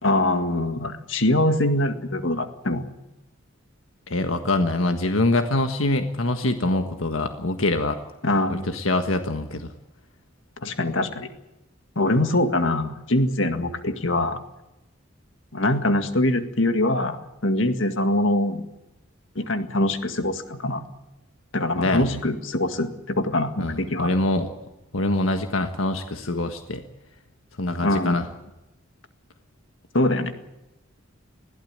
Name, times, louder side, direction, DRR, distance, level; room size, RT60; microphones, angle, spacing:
voice 1, 0.0-2.8 8.2-8.7 10.6-11.3 12.0-14.4 15.5-18.6 19.4-20.8 21.5-24.1 27.8-28.2 29.9-30.3, left 1 dB, 70° left, 8 dB, 2.0 m, -23 dB
voice 2, 4.1-8.0 8.5-9.7 21.8-22.2 23.6-24.5 24.9-26.8 27.6-28.3, left 2 dB, 90° left, 7 dB, 1.5 m, -24 dB
21.0 x 16.0 x 8.8 m, 0.95 s
head